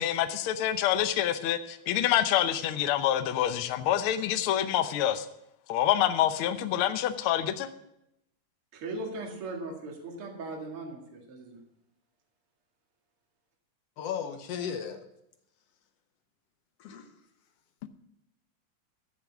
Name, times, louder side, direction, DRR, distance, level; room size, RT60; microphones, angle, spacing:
voice 1, 0.0-5.3 5.7-7.7, left 11 dB, 85° left, 1.2 m, -27 dB
voice 2, 8.7-11.6, right 2 dB, 50° right, 2.7 m, -38 dB
voice 3, 14.0-15.0 16.8-17.1, left 7 dB, 65° left, 1.8 m, -35 dB
13.0 x 7.3 x 5.9 m
omnidirectional pair, 3.4 m